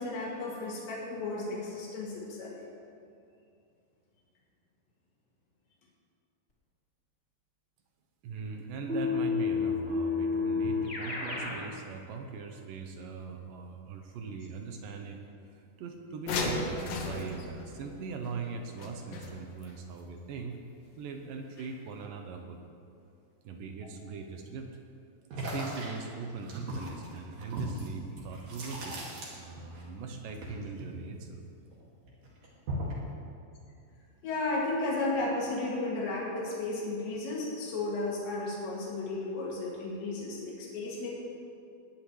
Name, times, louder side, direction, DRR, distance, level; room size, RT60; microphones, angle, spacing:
voice 1, 0.0-2.6 34.2-41.1, left 2 dB, 90° left, -5 dB, 4.6 m, -34 dB
voice 2, 8.2-15.2 15.6-20.6 21.0-22.6 23.4-24.7 25.5-29.0 29.4-31.4, right 5 dB, 75° right, 4 dB, 2.1 m, -40 dB
Keyboard (musical), 8.9-11.6, left 5 dB, 20° left, 2.4 m, -30 dB
sound 1, 16.3-19.7 21.6-21.7 22.0-22.1, left 3 dB, 70° left, 2.8 m, -35 dB
sound 2, 25.3-29.8 30.1-31.7 32.1-33.1, equal, 50° right, 3.2 m, -38 dB
20.0 x 10.5 x 3.3 m, 2.5 s
omnidirectional pair, 4.8 m